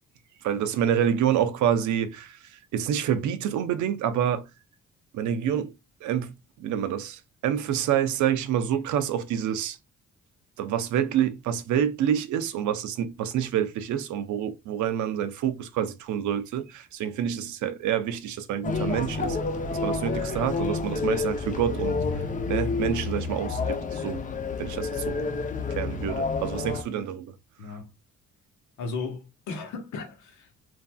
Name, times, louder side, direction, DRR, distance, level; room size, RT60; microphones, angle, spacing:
voice 1, 0.4-4.5 5.1-5.7 6.0-6.3 6.6-9.8 10.6-19.4 19.7-22.0 22.5-24.3 24.6-25.2 25.7-27.3 27.7-27.8, right 9 dB, 75° right, 0.5 m, -27 dB
sound 1, 18.6-26.8, left 4 dB, 25° left, 0.5 m, -29 dB
voice 2, 27.6-27.9 28.8-30.6, left 4 dB, 80° left, 1.0 m, -36 dB
3.1 x 2.6 x 2.2 m
cardioid pair, 90°, 30 cm